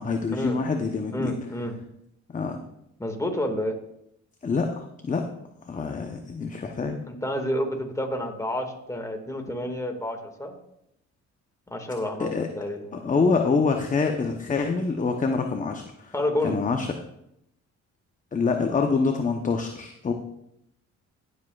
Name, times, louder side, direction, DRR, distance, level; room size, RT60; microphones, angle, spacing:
voice 1, 0.0-1.3 2.3-2.6 4.4-5.2 5.7-7.0 12.2-12.5 12.9-16.1 16.4-16.9 18.3-20.1, left 4 dB, 25° left, 4 dB, 0.8 m, -26 dB
voice 2, 1.1-1.7 3.0-3.7 7.1-10.6 11.7-13.1 16.1-16.6, left 1 dB, 10° left, 3 dB, 1.8 m, -29 dB
16.0 x 7.7 x 2.4 m, 0.79 s
cardioid pair, 90°, 30 cm